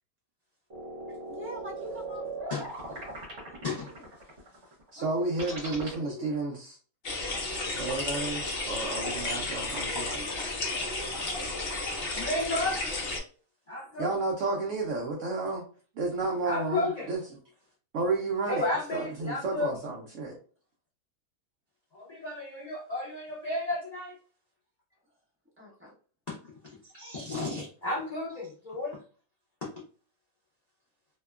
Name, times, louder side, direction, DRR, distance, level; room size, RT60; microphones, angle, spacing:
sound 1, 0.7-5.9, right 2 dB, 50° right, 1.1 m, -39 dB
voice 1, 1.3-4.1 5.0-6.3 9.6-11.2 11.5-12.0 25.6-25.9, equal, 10° right, 0.6 m, -46 dB
voice 2, 4.9-6.8 7.7-10.1 14.0-15.6 15.9-17.2 17.9-18.6 18.9-20.4, right 3 dB, 70° right, 0.7 m, -31 dB
sound 2, 7.0-13.2, left 2 dB, 50° left, 0.7 m, -33 dB
voice 3, 12.1-12.9 13.7-14.1 16.4-17.1 18.5-19.7 21.9-24.2 26.3-29.0, left 2 dB, 80° left, 0.3 m, -33 dB
2.8 x 2.2 x 2.3 m
omnidirectional pair, 1.7 m